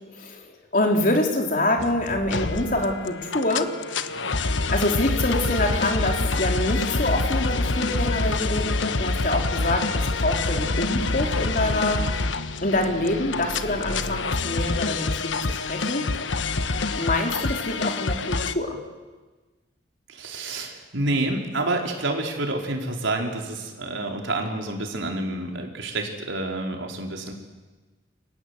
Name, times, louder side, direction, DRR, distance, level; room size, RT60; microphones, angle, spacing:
voice 1, 0.0-3.7 4.7-12.0 12.6-16.1 17.0-18.8, left 1 dB, 45° left, 2 dB, 4.1 m, -26 dB
sound 1, 1.8-18.5, left 3 dB, 75° left, 1.2 m, -26 dB
voice 2, 20.1-27.3, right 2 dB, 80° right, 2 dB, 4.7 m, -28 dB
29.0 x 23.5 x 8.4 m, 1.3 s
head